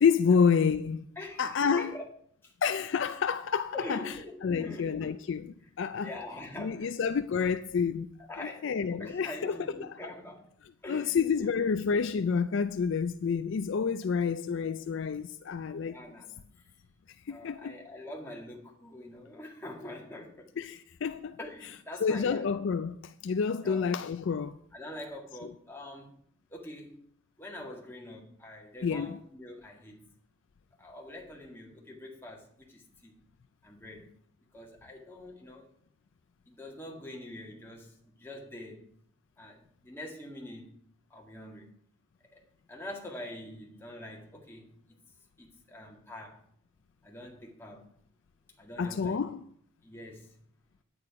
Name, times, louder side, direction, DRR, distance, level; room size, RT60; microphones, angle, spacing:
voice 1, 0.0-1.0 1.4-1.9 2.6-4.1 4.4-6.1 6.6-10.0 10.9-16.0 17.3-17.8 20.6-21.4 22.0-24.5 28.8-29.2 48.8-49.4, left 6 dB, 55° left, 0.3 m, -29 dB
voice 2, 1.2-2.1 2.4-2.5 3.7-5.2 6.0-7.0 8.3-10.5 10.8-11.5 15.8-16.4 17.3-20.5 21.4-22.5 23.6-23.9 24.7-26.1 26.5-27.0 27.4-30.0 30.8-33.1 33.6-34.0 34.5-35.6 36.5-38.8 39.4-40.7 41.1-41.7 42.3-42.4 42.7-44.7 45.4-46.4 47.0-47.9 48.6-49.2 49.8-50.4, left 1 dB, 10° left, 1.8 m, -44 dB
9.9 x 8.8 x 4.8 m
head